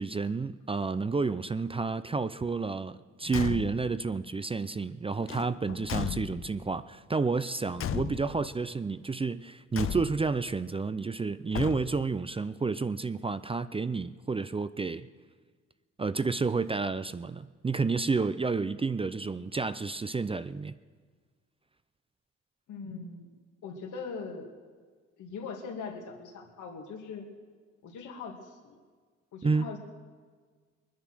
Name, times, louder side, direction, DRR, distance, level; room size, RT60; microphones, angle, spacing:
voice 1, 0.0-15.1 16.0-20.8 29.4-29.7, right 4 dB, 20° right, 0.4 m, -30 dB
Car / Truck / Slam, 3.2-4.0 5.2-6.7 7.8-8.5 9.7-10.4 11.5-12.2, left 10 dB, 45° left, 0.6 m, -36 dB
voice 2, 22.7-23.3 23.6-24.5 25.2-27.3 27.8-28.8 29.3-29.8, left 5 dB, 80° left, 2.5 m, -41 dB
21.5 x 10.5 x 6.2 m
cardioid pair, 90°, 30 cm